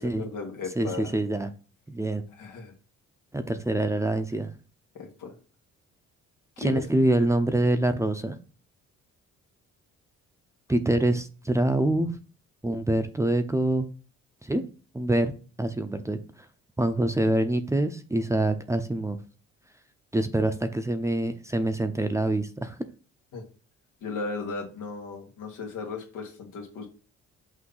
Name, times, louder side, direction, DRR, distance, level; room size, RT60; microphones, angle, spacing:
voice 1, 0.0-1.1 2.4-2.7 4.9-5.3 6.6-6.8 23.3-23.4 24.0-26.9, left 4 dB, 85° left, 2 dB, 1.8 m, -36 dB
voice 2, 0.8-1.5 1.9-2.2 3.3-4.5 6.6-8.4 10.7-12.2 12.6-13.9 14.4-14.6 14.9-15.3 15.6-16.2 16.8-19.2 20.1-22.8, right 1 dB, 10° right, 8 dB, 0.7 m, -25 dB
6.2 x 2.8 x 5.6 m, 0.36 s
cardioid pair, 90°, 30 cm